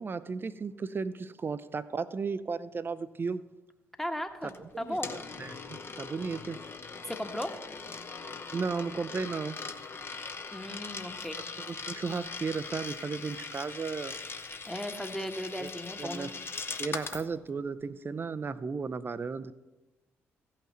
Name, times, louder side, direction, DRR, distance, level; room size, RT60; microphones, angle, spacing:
voice 1, 0.0-3.4 4.4-5.0 5.4-6.6 8.5-9.6 11.7-14.1 15.6-15.7 16.0-16.3 16.8-19.5, right 4 dB, 30° right, 14 dB, 0.6 m, -34 dB
voice 2, 4.0-5.1 7.1-7.5 10.5-11.4 14.6-16.3, equal, 5° left, 6 dB, 1.3 m, -36 dB
Coin (dropping), 4.5-17.3, left 4 dB, 35° left, 1.0 m, -41 dB
16.0 x 5.8 x 4.3 m, 1.1 s
figure-of-eight pair, 40°, 7 cm